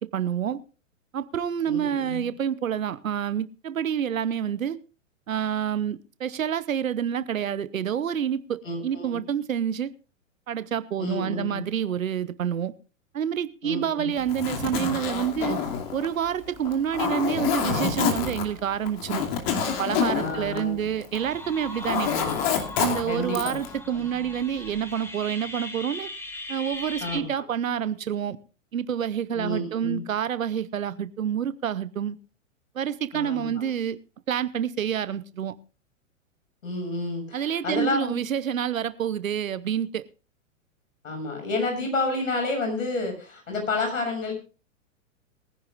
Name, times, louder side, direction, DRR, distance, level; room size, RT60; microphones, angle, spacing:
voice 1, 0.1-0.6 1.1-4.8 5.3-9.9 10.5-12.7 13.1-15.6 15.9-19.3 19.7-22.1 22.8-26.1 26.5-28.4 28.7-32.2 32.7-34.0 34.3-35.5 37.3-40.0, right 9 dB, 85° right, 0.9 m, -28 dB
voice 2, 1.7-2.3 8.6-9.2 11.0-11.6 13.6-14.1 20.1-20.9 22.0-22.4 23.1-23.5 27.0-27.4 29.3-30.0 33.1-33.6 36.6-38.1 41.0-44.3, left 2 dB, 80° left, 6.7 m, -30 dB
Zipper (clothing), 14.2-21.3 21.6-23.7, left 7 dB, 50° left, 2.7 m, -28 dB
sound 1, 21.1-27.2, left 2 dB, 5° left, 1.8 m, -39 dB
22.5 x 10.5 x 2.5 m
hypercardioid pair, 115°, 39 cm